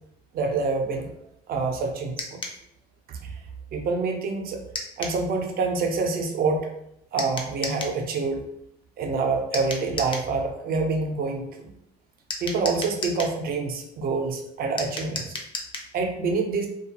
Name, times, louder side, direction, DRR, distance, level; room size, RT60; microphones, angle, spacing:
voice 1, 0.3-1.1 1.5-2.4 3.1-3.3 3.7-4.6 5.0-6.7 7.1-8.4 9.0-11.4 12.4-15.3 15.9-16.7, right 4 dB, 55° right, 4 dB, 0.6 m, -26 dB
sound 1, 2.2-2.6 4.7-5.2 7.2-8.0 9.5-10.3 12.3-13.4 14.8-15.9, left 3 dB, 30° left, 0.5 m, -33 dB
2.3 x 2.3 x 2.8 m, 0.76 s
cardioid pair, 105°, 19 cm